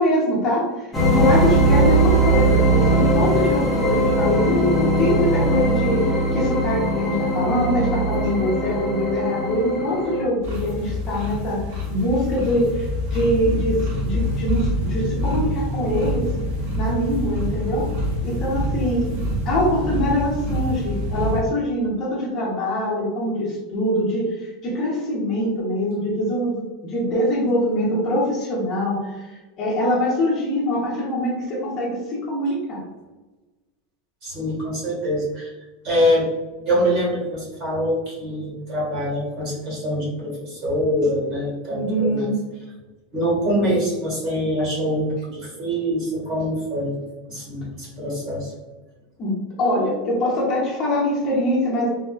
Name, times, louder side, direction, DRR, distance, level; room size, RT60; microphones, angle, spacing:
voice 1, 0.0-16.3 16.8-17.9 18.2-19.1 19.4-32.8 41.7-42.4 49.2-51.9, equal, 30° left, -5 dB, 0.9 m, -23 dB
sound 1, 0.9-10.2, right 1 dB, ahead, 0.6 m, -20 dB
sound 2, 10.4-21.4, left 1 dB, 60° right, 1.3 m, -26 dB
voice 2, 34.2-35.5 35.8-36.3 36.6-42.3 43.1-46.9 47.3-48.5, equal, 40° right, -3 dB, 1.3 m, -24 dB
3.5 x 2.2 x 2.2 m, 1.2 s
supercardioid pair, 170°, 0 cm